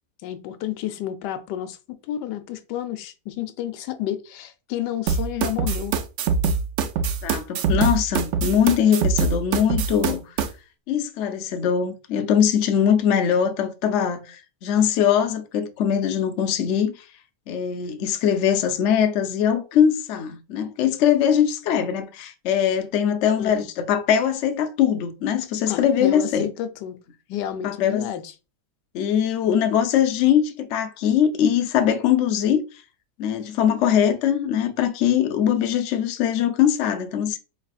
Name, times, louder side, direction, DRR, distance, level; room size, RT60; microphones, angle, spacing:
voice 1, 0.2-1.8 2.0-5.9 23.0-23.7 25.7-27.0 27.3-28.3, left 11 dB, 85° left, 1.2 m, -31 dB
sound 1, 5.1-10.5, right 5 dB, 70° right, 0.7 m, -23 dB
voice 2, 7.2-10.2 10.9-16.9 17.5-26.5 27.6-28.1 28.9-32.6 33.2-37.4, left 9 dB, 65° left, 0.7 m, -21 dB
4.8 x 3.2 x 2.4 m
omnidirectional pair, 1.8 m